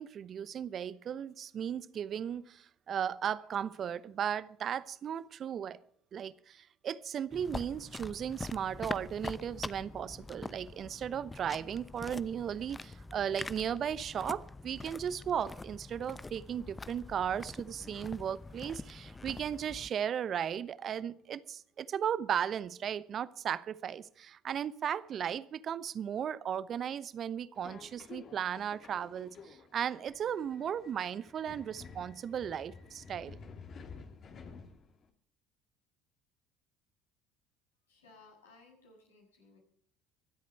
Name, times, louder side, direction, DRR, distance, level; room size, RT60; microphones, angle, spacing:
voice 1, 0.0-5.8 6.1-33.4, right 8 dB, 45° right, 0.9 m, -36 dB
sound 1, 7.3-19.9, left 3 dB, 20° left, 0.7 m, -44 dB
Subway metro underground, 27.5-35.1, left 5 dB, 45° left, 2.7 m, -52 dB
voice 2, 37.9-39.6, left 3 dB, 90° left, 6.8 m, -59 dB
24.5 x 8.5 x 4.5 m
hypercardioid pair, 65°, 0 cm